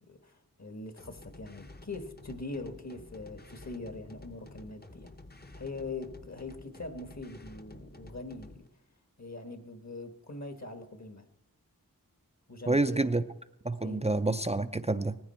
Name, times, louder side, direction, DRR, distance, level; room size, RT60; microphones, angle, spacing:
voice 1, 0.1-5.1 5.5-8.7 9.2-11.3 12.5-13.1 13.8-14.1, left 3 dB, 50° left, 1.5 m, -42 dB
sound 1, 1.0-8.7, left 2 dB, 30° left, 0.8 m, -51 dB
voice 2, 12.7-13.2 13.6-15.2, right 2 dB, 20° right, 0.5 m, -28 dB
18.5 x 15.0 x 4.4 m
wide cardioid pair, 50°, 35 cm